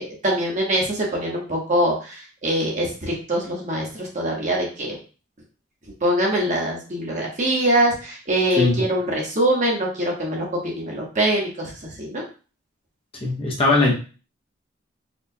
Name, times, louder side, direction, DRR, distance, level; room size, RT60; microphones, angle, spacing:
voice 1, 0.0-5.0 6.0-11.7 12.0-12.2, right 1 dB, 40° right, -2 dB, 1.1 m, -23 dB
voice 2, 13.2-13.9, left 3 dB, 30° left, -1 dB, 0.7 m, -19 dB
4.3 x 2.3 x 2.7 m, 0.36 s
head